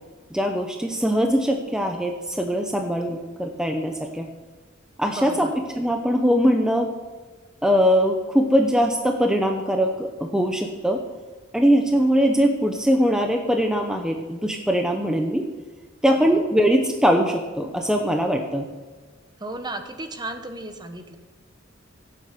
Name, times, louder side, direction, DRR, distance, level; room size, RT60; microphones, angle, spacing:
voice 1, 0.3-4.2 5.0-5.5 5.7-6.9 7.6-11.0 11.5-15.5 16.0-18.7, equal, 5° right, 3 dB, 0.9 m, -21 dB
voice 2, 5.1-5.5 16.1-16.3 19.4-21.2, right 2 dB, 20° right, 7 dB, 1.1 m, -34 dB
16.5 x 7.7 x 6.8 m, 1.4 s
head